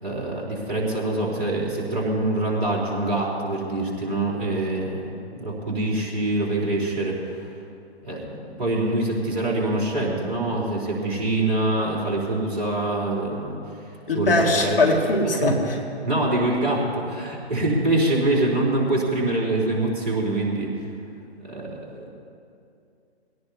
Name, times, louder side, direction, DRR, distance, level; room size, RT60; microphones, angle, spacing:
voice 1, 0.0-7.5 8.0-14.8 15.2-15.5 16.0-20.7 21.4-22.1, right 2 dB, 45° right, -3 dB, 3.9 m, -25 dB
voice 2, 14.1-15.7, left 2 dB, 55° left, 0 dB, 2.3 m, -21 dB
21.5 x 17.5 x 2.8 m, 2.5 s
figure-of-eight pair, 130°, 33 cm